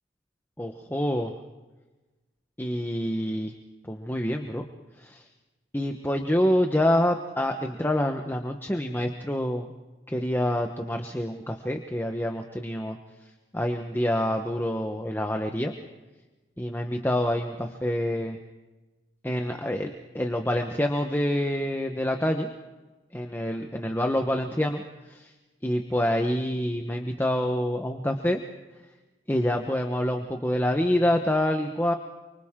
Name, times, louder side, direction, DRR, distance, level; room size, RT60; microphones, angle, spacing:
voice 1, 0.6-1.3 2.6-3.5 3.8-4.6 5.0-5.2 5.7-9.7 10.1-13.0 13.5-15.7 16.6-18.4 19.2-22.5 23.1-24.8 25.1-25.3 25.6-28.4 29.3-31.9, left 1 dB, 10° left, 3 dB, 1.1 m, -27 dB
29.5 x 24.5 x 3.8 m, 1.2 s
head